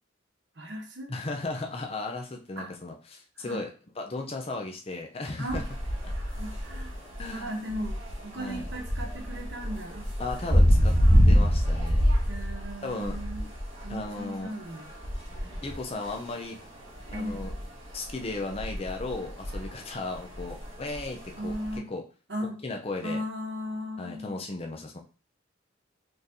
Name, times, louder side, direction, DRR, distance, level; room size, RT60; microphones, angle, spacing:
voice 1, 0.6-1.1 2.6-2.7 3.4-3.6 5.4-5.6 6.2-7.0 7.3-10.1 10.4-10.5 11.0-11.3 12.3-13.4 13.8-14.8 15.3-15.6 17.0-17.5 21.4-21.9 22.3-22.6 23.0-24.3, equal, 65° right, 2 dB, 1.0 m, -37 dB
voice 2, 1.1-3.7 4.0-5.6 7.2-7.5 8.4-8.7 10.2-10.9 11.3-12.0 12.8-13.2 13.9-14.5 15.6-16.6 17.1-17.5 17.9-22.0 22.6-23.2 24.0-25.0, left 2 dB, 30° left, 2 dB, 0.6 m, -35 dB
sound 1, 5.5-21.8, equal, 30° right, 1.5 m, -27 dB
4.0 x 3.3 x 2.7 m, 0.36 s
head